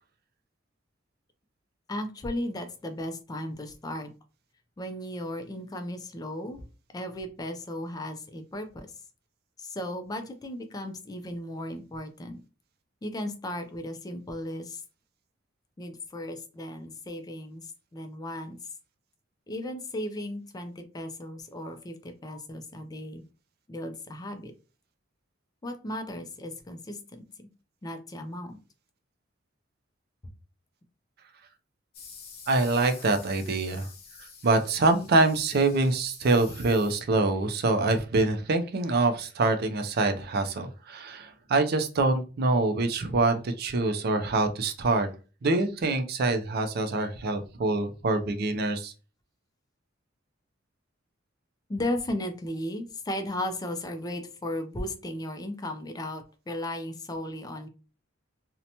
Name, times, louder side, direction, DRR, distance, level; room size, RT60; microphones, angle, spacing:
voice 1, 1.9-4.1 4.8-6.6 6.9-8.9 9.6-12.4 13.0-14.8 15.8-18.6 19.5-23.2 23.7-24.5 25.6-27.0 27.8-28.6 51.7-57.7, left 1 dB, 20° left, 7 dB, 0.3 m, -35 dB
sound 1, 31.9-37.3, left 5 dB, 50° left, 0.7 m, -48 dB
voice 2, 32.5-33.9 34.2-45.1 45.4-48.9, right 2 dB, 55° right, 8 dB, 0.4 m, -25 dB
2.7 x 2.1 x 2.7 m, 0.34 s
head